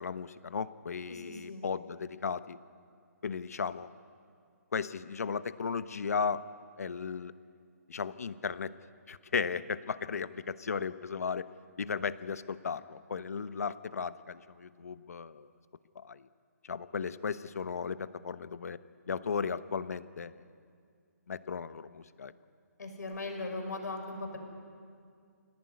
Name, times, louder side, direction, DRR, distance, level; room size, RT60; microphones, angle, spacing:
voice 1, 0.0-2.6 3.2-3.9 4.7-6.4 6.8-7.3 7.9-8.7 9.1-11.5 11.8-15.5 15.9-16.2 16.6-18.8 19.1-20.4 21.3-22.3, left 5 dB, 60° left, 14 dB, 1.1 m, -35 dB
voice 2, 1.1-1.7 22.8-24.4, left 2 dB, 90° left, 4 dB, 6.1 m, -39 dB
27.5 x 18.0 x 9.7 m, 2.3 s
hypercardioid pair, 175°, 9 cm